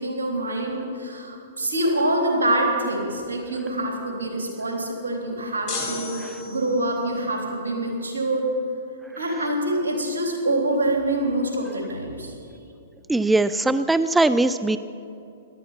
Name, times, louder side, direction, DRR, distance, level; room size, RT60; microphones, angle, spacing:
voice 1, 0.0-8.5 9.1-12.3, right 1 dB, 80° right, 1 dB, 3.6 m, -25 dB
sound 1, 5.7-7.0, left 3 dB, 40° left, 4.3 m, -33 dB
voice 2, 13.1-14.8, right 2 dB, 5° right, 13 dB, 0.4 m, -20 dB
17.5 x 12.5 x 5.9 m, 2.6 s
hypercardioid pair, 115°, 0 cm